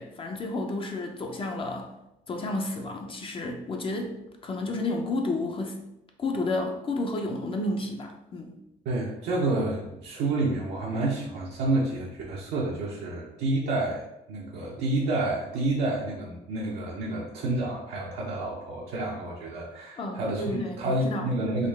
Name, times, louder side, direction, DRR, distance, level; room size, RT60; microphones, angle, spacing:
voice 1, 0.0-1.9 2.3-5.8 6.2-8.5 20.0-21.3, left 2 dB, 30° left, 3 dB, 0.5 m, -31 dB
voice 2, 8.8-14.0 14.3-21.7, right 2 dB, 80° right, -5 dB, 0.7 m, -29 dB
3.7 x 2.3 x 3.3 m, 0.89 s
cardioid pair, 110°, 17 cm